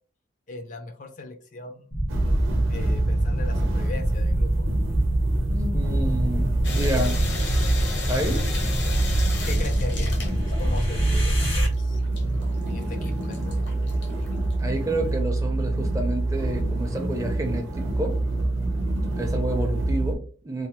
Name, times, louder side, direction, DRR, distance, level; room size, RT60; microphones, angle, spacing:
voice 1, 0.5-1.9 2.7-4.7 8.8-8.9 9.5-10.2 10.6-12.0 12.7-13.7, left 2 dB, 40° left, 0.4 m, -39 dB
sound 1, 1.9-11.7, equal, 85° left, 1.5 m, -25 dB
sound 2, 2.1-20.1, right 2 dB, 85° right, 0.7 m, -27 dB
voice 2, 5.5-7.2 8.1-8.5 14.6-18.2 19.2-20.7, right 1 dB, 15° right, 0.5 m, -29 dB
sound 3, 6.6-11.1 11.6-14.6, left 4 dB, 65° left, 0.7 m, -35 dB
3.1 x 2.0 x 2.8 m
head